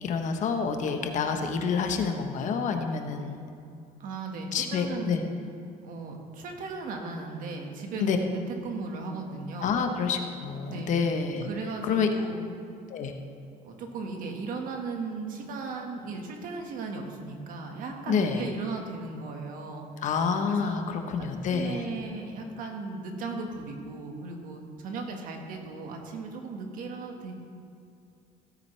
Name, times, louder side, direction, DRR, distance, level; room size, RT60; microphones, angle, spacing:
voice 1, 0.0-3.4 4.5-5.2 8.0-8.2 9.6-11.5 11.9-12.1 12.9-13.1 18.1-18.4 20.0-21.8, left 6 dB, 55° left, 5 dB, 1.1 m, -28 dB
voice 2, 4.0-5.2 5.8-9.8 10.6-11.1 11.4-12.5 13.6-19.9 20.5-20.8 21.2-27.3, right 3 dB, 65° right, 2 dB, 1.7 m, -37 dB
16.0 x 9.2 x 3.4 m, 2.6 s
cardioid pair, 120°, 15 cm